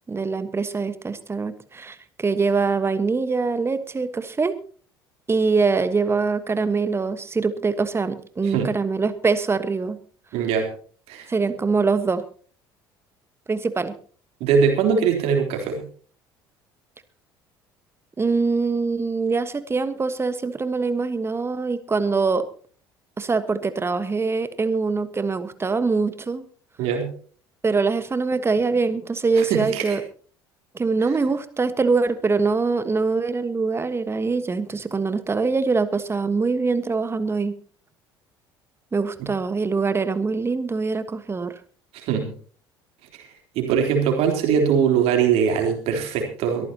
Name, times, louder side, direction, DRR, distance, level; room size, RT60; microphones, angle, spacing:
voice 1, 0.1-4.6 5.3-10.0 11.3-12.2 13.5-13.9 18.2-22.5 23.2-26.4 27.6-30.0 30.7-37.6 38.9-41.6, right 4 dB, 20° right, 13 dB, 1.4 m, -23 dB
voice 2, 10.3-10.7 11.1-11.3 14.4-15.8 26.8-27.1 29.4-30.0 41.9-42.3 43.6-46.7, right 7 dB, 55° right, 3 dB, 3.7 m, -21 dB
23.0 x 14.0 x 2.9 m, 0.43 s
figure-of-eight pair, 60°, 12 cm